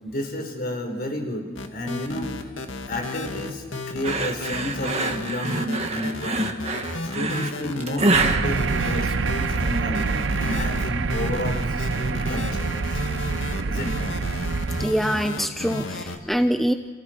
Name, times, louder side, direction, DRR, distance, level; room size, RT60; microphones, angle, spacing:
voice 1, 0.0-2.3 2.8-6.5 7.1-13.1 13.7-14.2, left 1 dB, 50° left, 3 dB, 4.6 m, -31 dB
sound 1, 1.6-16.2, left 2 dB, 80° left, 2.1 m, -33 dB
sound 2, 4.0-9.6, right 3 dB, 35° right, 1.8 m, -26 dB
sound 3, 8.1-14.9, right 4 dB, 65° right, 0.6 m, -26 dB
voice 2, 14.8-16.7, equal, ahead, 7 dB, 0.7 m, -24 dB
29.5 x 29.0 x 4.6 m, 1.5 s
head